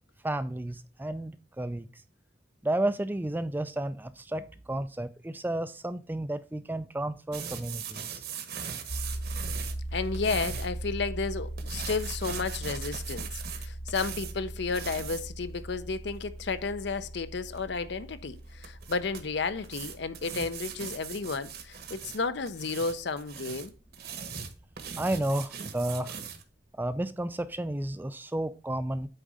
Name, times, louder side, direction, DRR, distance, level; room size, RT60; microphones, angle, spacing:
voice 1, 0.2-1.9 2.6-8.2 25.0-26.2 26.8-29.1, right 1 dB, 10° right, 0.3 m, -32 dB
sound 1, 7.3-10.7 11.6-14.3 14.7-15.2 17.6-17.7 18.6-19.2 19.6-22.2 22.5-26.4, right 7 dB, 50° right, 1.0 m, -40 dB
sound 2, 8.9-23.7, right 1 dB, 75° left, 1.7 m, -40 dB
voice 2, 9.9-23.7, left 4 dB, 60° left, 0.6 m, -32 dB
8.8 x 3.8 x 4.8 m
head